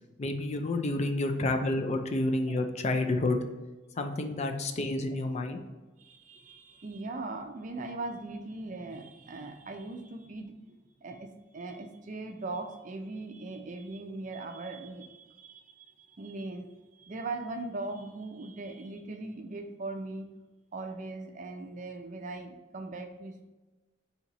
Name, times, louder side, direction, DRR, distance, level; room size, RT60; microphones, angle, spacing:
voice 1, 0.2-3.4 4.0-5.6, left 2 dB, 35° left, 5 dB, 0.4 m, -29 dB
voice 2, 6.0-10.7 11.0-20.3 20.7-23.5, right 2 dB, 45° right, 5 dB, 0.5 m, -40 dB
4.4 x 2.8 x 3.9 m, 1.1 s
head